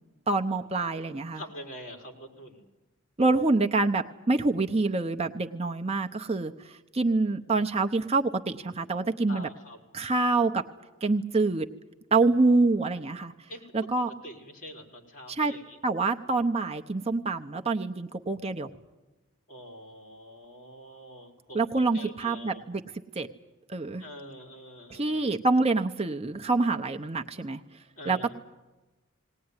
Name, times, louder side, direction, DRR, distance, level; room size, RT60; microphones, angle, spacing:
voice 1, 0.3-1.4 3.2-9.5 9.9-10.6 11.0-11.7 12.1-13.3 13.7-14.1 15.3-15.5 15.8-18.7 21.5-22.8 23.2-23.3 23.7-24.0 24.9-27.6 28.1-28.3, right 3 dB, 30° right, 4 dB, 0.7 m, -26 dB
voice 2, 1.3-2.6 9.3-9.8 13.5-13.9 14.2-15.8 19.5-22.6 24.0-25.2 28.0-28.3, equal, 40° left, 2 dB, 4.3 m, -45 dB
19.5 x 19.0 x 9.6 m, 1.1 s
head